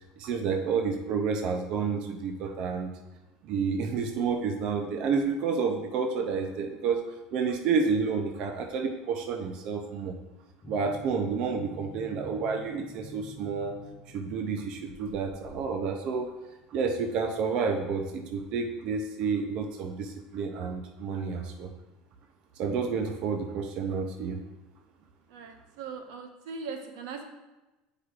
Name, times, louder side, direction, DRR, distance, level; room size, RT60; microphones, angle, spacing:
voice 1, 0.2-2.9 3.4-7.0 7.3-10.1 10.7-13.8 14.1-16.3 16.7-21.7 22.6-24.4, right 5 dB, 40° right, 4 dB, 0.5 m, -30 dB
sound 1, 10.6-16.5, right 1 dB, 15° left, 0.9 m, -48 dB
voice 2, 25.3-27.2, right 5 dB, 90° right, 4 dB, 1.0 m, -40 dB
9.8 x 4.8 x 2.4 m, 1.1 s
cardioid pair, 170°, 2 cm